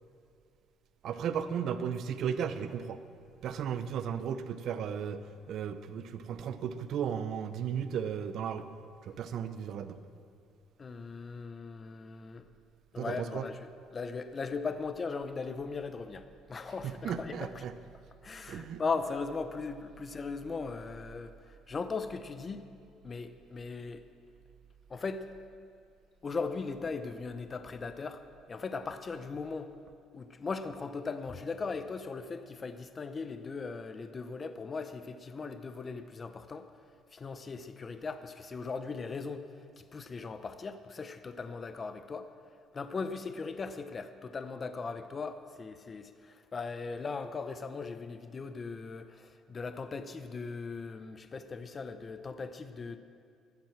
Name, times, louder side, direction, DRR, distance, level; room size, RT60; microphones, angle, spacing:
voice 1, 1.0-3.0 3.4-5.2 5.5-8.6 9.1-10.0 13.0-13.5 16.8-17.7 18.5-18.8, right 8 dB, 60° right, 11 dB, 0.7 m, -35 dB
voice 2, 10.8-12.4 12.9-13.6 13.9-16.2 16.5-17.6 18.2-21.3 21.7-22.6 23.0-24.0 24.9-25.2 26.2-28.2 28.5-29.7 30.1-36.7 37.1-39.4 39.8-42.3 42.7-53.0, left 4 dB, 30° left, 10 dB, 0.6 m, -38 dB
13.5 x 9.5 x 7.2 m, 2.5 s
cardioid pair, 125°, 0 cm